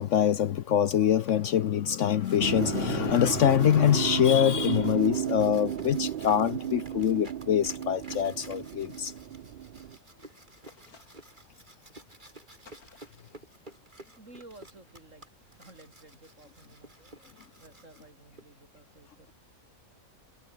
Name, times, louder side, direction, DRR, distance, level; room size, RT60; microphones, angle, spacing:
voice 1, 0.0-9.1, left 10 dB, 65° left, 1.0 m, -24 dB
sound 1, 2.2-18.4, right 1 dB, 30° right, 5.0 m, -53 dB
sound 2, 2.4-10.0, right 10 dB, 75° right, 0.4 m, -34 dB
sound 3, 10.7-11.5 12.6-13.4, left 4 dB, 90° left, 3.1 m, -56 dB
voice 2, 14.2-15.2 15.6-16.9 17.6-19.3, right 2 dB, 55° right, 6.0 m, -53 dB
omnidirectional pair, 1.5 m